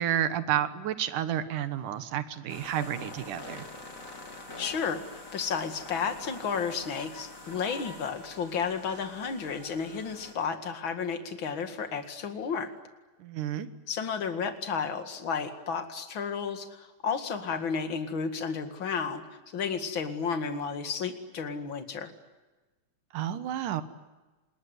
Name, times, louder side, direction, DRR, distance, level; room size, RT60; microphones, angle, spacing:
voice 1, 0.0-3.7 13.2-13.7 23.1-23.8, right 11 dB, 90° right, 12 dB, 2.8 m, -30 dB
sound 1, 2.5-10.3, left 2 dB, 25° left, 3.5 m, -45 dB
voice 2, 4.6-12.7 13.9-19.2 19.5-22.1, left 6 dB, 40° left, 7 dB, 2.6 m, -32 dB
27.5 x 21.0 x 9.5 m, 1.2 s
omnidirectional pair, 3.5 m